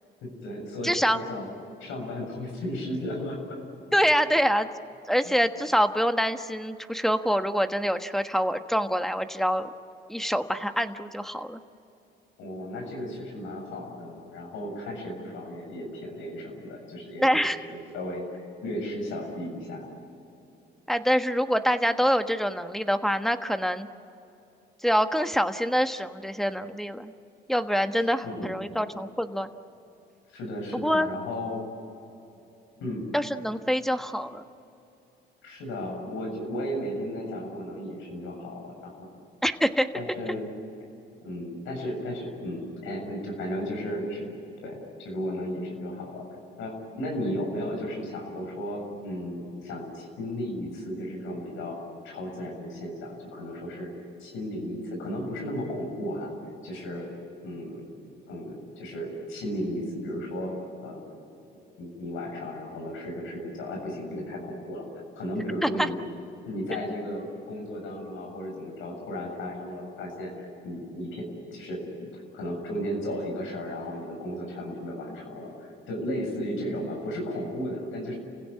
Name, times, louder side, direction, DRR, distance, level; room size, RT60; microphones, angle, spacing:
voice 1, 0.2-1.4 1.8-3.6 12.4-17.4 17.7-19.9 28.2-28.7 30.3-31.6 32.8-33.0 35.4-39.1 39.9-40.5 41.2-44.3 44.6-46.3 46.6-51.8 52.0-53.9 54.2-56.3 56.6-57.1 57.4-57.8 58.3-60.5 60.8-61.1 61.8-64.8 65.2-66.0 66.5-78.2, equal, 90° left, 1 dB, 7.2 m, -34 dB
voice 2, 0.8-1.2 3.9-4.7 5.1-9.7 10.1-11.6 17.2-17.6 20.9-23.9 24.8-27.1 27.5-29.5 30.8-31.1 33.1-34.4 39.4-39.9 65.6-65.9, equal, ahead, 8 dB, 1.3 m, -25 dB
29.5 x 16.5 x 9.9 m, 2.9 s
cardioid pair, 90°, 20 cm